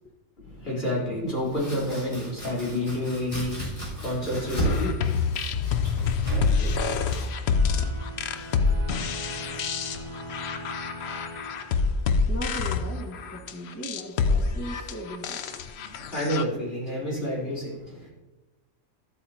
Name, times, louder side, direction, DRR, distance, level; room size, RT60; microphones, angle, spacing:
voice 1, 0.4-5.2 15.8-18.1, left 1 dB, 40° left, -7 dB, 3.9 m, -29 dB
Domestic sounds home sounds, 1.3-9.0, equal, 25° left, 4.0 m, -34 dB
sound 1, 4.5-16.4, left 5 dB, 60° left, 0.7 m, -27 dB
sound 2, 7.5-12.3, right 1 dB, 45° right, 1.1 m, -41 dB
voice 2, 12.3-15.6, right 1 dB, 10° left, -3 dB, 1.3 m, -38 dB
13.5 x 8.6 x 2.8 m, 1.1 s
omnidirectional pair, 1.5 m